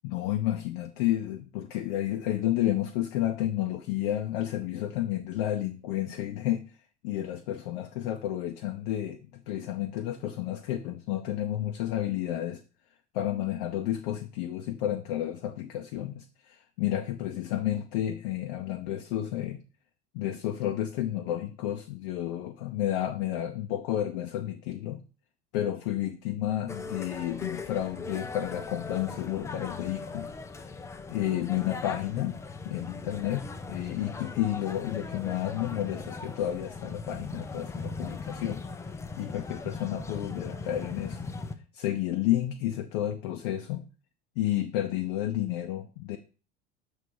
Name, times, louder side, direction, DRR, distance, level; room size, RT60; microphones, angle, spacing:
voice 1, 0.0-6.6 7.0-12.6 13.1-19.6 20.1-25.0 25.5-30.3 31.1-32.4 32.6-38.6 39.2-41.3 41.7-43.8 44.4-46.2, left 12 dB, 50° left, 5 dB, 0.6 m, -31 dB
sound 1, 26.7-41.5, left 4 dB, 10° left, 0.4 m, -39 dB
6.8 x 3.2 x 4.5 m, 0.35 s
figure-of-eight pair, 70°, 34 cm